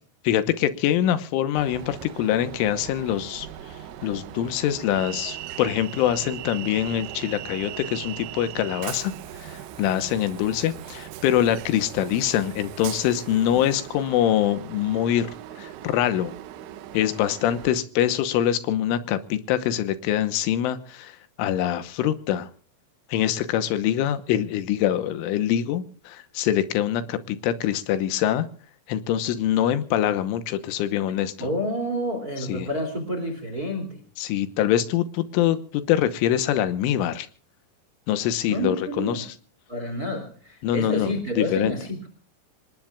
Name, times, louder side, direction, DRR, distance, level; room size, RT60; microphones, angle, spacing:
voice 1, 0.2-3.5 4.0-15.3 15.6-16.3 16.9-22.5 23.1-28.5 28.9-31.5 32.5-32.7 34.2-37.3 38.1-39.3 40.6-41.7, left 11 dB, 80° left, 11 dB, 3.4 m, -24 dB
Train, 1.6-17.7, right 11 dB, 75° right, 3.1 m, -39 dB
voice 2, 31.4-34.0 38.5-39.3 39.7-42.1, equal, 25° right, 6 dB, 2.4 m, -29 dB
26.5 x 19.5 x 2.4 m, 0.41 s
omnidirectional pair, 5.8 m